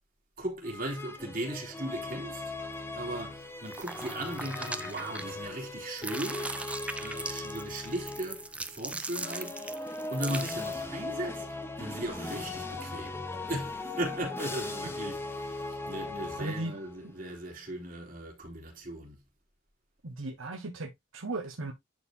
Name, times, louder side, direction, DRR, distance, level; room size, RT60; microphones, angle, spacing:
voice 1, 0.4-2.4 2.9-6.5 7.0-11.5 11.8-19.2, right 1 dB, 45° right, 3.5 m, -38 dB
sound 1, 0.6-8.5 9.1-17.0, left 2 dB, 10° left, 1.1 m, -39 dB
sound 2, 3.7-5.6 5.9-10.8, right 2 dB, 5° right, 0.5 m, -39 dB
voice 2, 16.4-16.8 20.0-21.7, right 2 dB, 90° right, 1.4 m, -36 dB
11.0 x 4.7 x 2.8 m
head